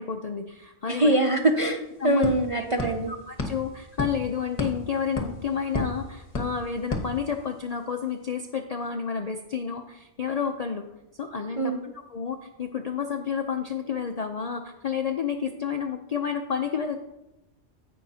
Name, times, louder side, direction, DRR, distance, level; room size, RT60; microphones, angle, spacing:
voice 1, 0.0-1.1 2.0-2.3 2.8-2.9 3.3-10.8 11.2-17.0, left 7 dB, 55° left, 5 dB, 0.4 m, -30 dB
voice 2, 0.9-3.1 11.6-11.9, right 2 dB, 45° right, 3 dB, 0.4 m, -23 dB
sound 1, 1.4-7.8, left 2 dB, 30° left, 1.2 m, -35 dB
16.0 x 5.5 x 2.7 m, 0.94 s
omnidirectional pair, 1.3 m